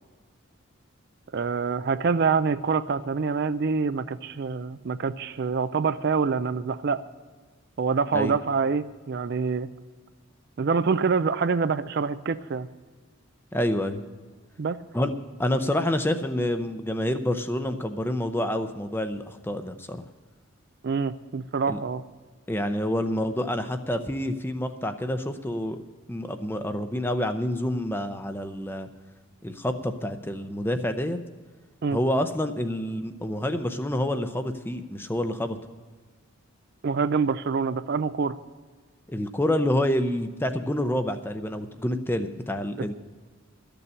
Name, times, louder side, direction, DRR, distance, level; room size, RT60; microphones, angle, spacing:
voice 1, 1.3-7.0 7.8-9.7 10.6-12.7 14.6-14.8 20.8-22.0 31.8-32.0 36.8-38.4 42.8-43.0, right 5 dB, 50° right, 13 dB, 0.4 m, -26 dB
voice 2, 13.5-14.0 14.9-15.1 15.4-20.0 21.7-21.8 22.5-25.8 26.1-28.9 29.4-31.2 31.9-35.6 39.1-42.9, left 1 dB, 10° left, 8 dB, 0.6 m, -28 dB
13.0 x 6.9 x 8.7 m, 1.4 s
head